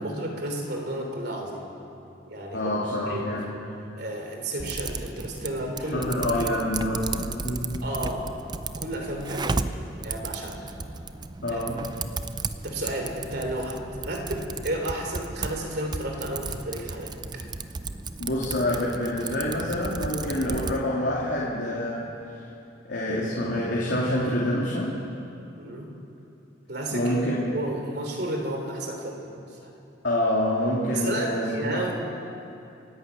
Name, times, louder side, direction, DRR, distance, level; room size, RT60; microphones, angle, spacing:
voice 1, 0.0-1.7 2.3-2.7 3.0-3.4 4.0-6.1 7.8-8.3 8.7-9.7 10.0-10.7 11.5-11.6 12.0-12.1 12.6-17.4 25.6-26.0 26.7-29.7 30.9-32.0, right 1 dB, 55° right, 2 dB, 3.3 m, -32 dB
voice 2, 2.5-3.5 5.9-7.8 11.4-11.8 18.2-22.1 22.8-24.9 26.9-27.5 30.0-31.8, left 1 dB, 60° left, -6 dB, 3.0 m, -27 dB
Typing, 4.6-20.8, right 3 dB, 20° right, 0.5 m, -34 dB
29.0 x 11.0 x 8.3 m, 2.8 s
head